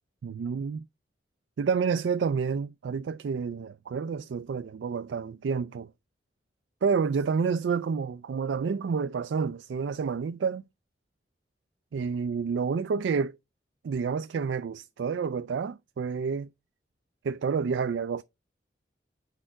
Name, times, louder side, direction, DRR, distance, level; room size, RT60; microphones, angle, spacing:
voice 1, 0.2-0.8 1.6-5.9 6.8-10.6 11.9-13.4 13.8-16.5 17.2-18.2, right 5 dB, 90° right, 0.3 m, -29 dB
6.6 x 4.4 x 3.7 m
head